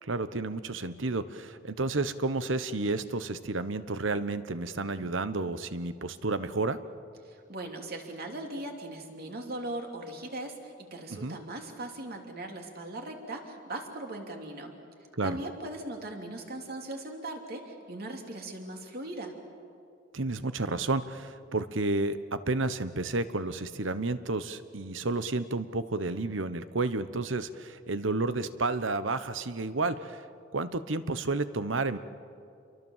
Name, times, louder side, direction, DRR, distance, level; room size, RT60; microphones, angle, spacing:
voice 1, 0.0-6.8 11.1-11.4 15.1-15.4 20.1-30.2 30.5-32.0, right 3 dB, 75° right, 12 dB, 1.1 m, -31 dB
voice 2, 7.2-14.7 15.2-19.3, right 1 dB, 50° right, 2 dB, 3.2 m, -39 dB
28.0 x 23.5 x 7.4 m, 2.5 s
head